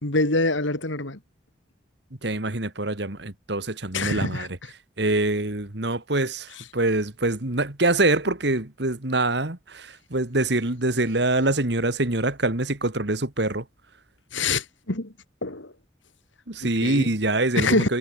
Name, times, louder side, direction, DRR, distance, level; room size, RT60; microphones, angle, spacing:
voice 1, 0.0-1.2 3.9-4.5 6.6-6.7 14.3-15.1 15.4-15.7 16.6-17.1 17.5-17.9, left 2 dB, 80° left, 3.5 m, -25 dB
voice 2, 2.2-4.5 5.0-13.6 16.5-18.0, right 2 dB, 60° right, 2.2 m, -25 dB
head